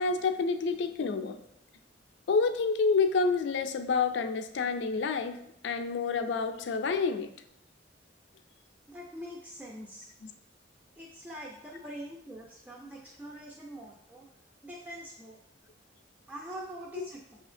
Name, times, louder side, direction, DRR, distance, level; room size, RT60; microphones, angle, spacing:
voice 1, 0.0-1.4 2.3-5.4 5.6-7.3 10.2-10.3, left 4 dB, 70° left, 8 dB, 0.3 m, -28 dB
voice 2, 8.9-10.1 11.0-14.3 14.6-15.4 16.3-17.4, equal, 10° right, -3 dB, 0.3 m, -44 dB
5.4 x 2.8 x 2.5 m, 0.77 s
head